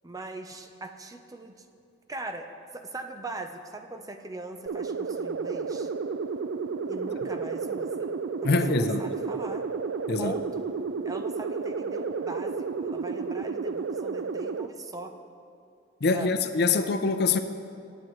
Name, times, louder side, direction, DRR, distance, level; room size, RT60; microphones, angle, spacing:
voice 1, 0.0-1.6 2.1-2.5 2.7-5.9 6.9-8.1 8.5-9.7 10.2-10.7 11.0-15.1 16.1-16.3, right 2 dB, 20° right, 6 dB, 0.6 m, -40 dB
sound 1, 4.7-14.7, right 5 dB, 85° right, 0.4 m, -32 dB
voice 2, 8.4-9.1 10.1-10.4 16.0-17.4, left 4 dB, 60° left, 9 dB, 0.6 m, -24 dB
20.0 x 8.9 x 3.1 m, 2.5 s
head